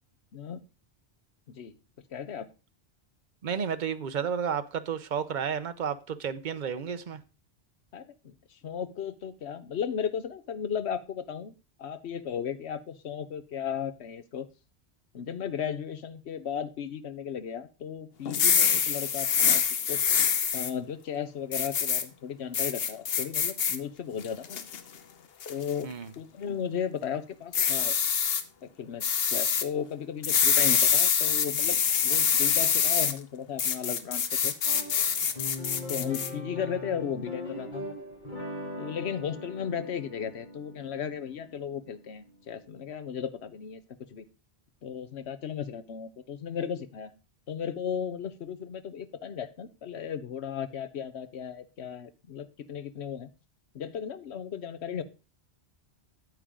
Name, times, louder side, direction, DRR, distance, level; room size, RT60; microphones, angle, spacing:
voice 1, 2.1-2.5 7.9-11.5 11.8-14.5 15.1-20.0 20.5-24.5 25.5-25.9 26.2-27.9 28.6-34.5 35.9-37.8 38.8-43.8 44.1-44.3 44.8-47.1 47.5-53.3 53.7-55.0, left 8 dB, 80° left, 1.1 m, -35 dB
voice 2, 3.4-7.2 25.8-26.1, right 7 dB, 50° right, 0.8 m, -32 dB
sound 1, 18.3-20.7 21.5-22.0 22.5-23.8 24.2-24.8 25.4-25.7 27.5-28.4 29.0-29.6 30.2-33.1 33.6-36.3, left 7 dB, 65° left, 1.0 m, -25 dB
sound 2, 34.6-43.1, left 1 dB, 45° left, 2.7 m, -41 dB
9.2 x 8.6 x 3.7 m
omnidirectional pair, 1.1 m